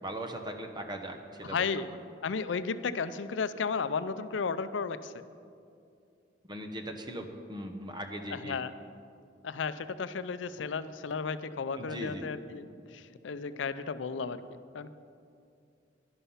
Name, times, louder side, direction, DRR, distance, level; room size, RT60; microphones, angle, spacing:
voice 1, 0.0-1.7 6.5-8.6 11.8-12.3, right 1 dB, 25° right, 5 dB, 1.0 m, -39 dB
voice 2, 1.4-1.9 2.2-5.2 8.3-8.7 9.4-15.0, left 5 dB, 75° left, 13 dB, 0.5 m, -34 dB
11.0 x 11.0 x 5.7 m, 2.4 s
head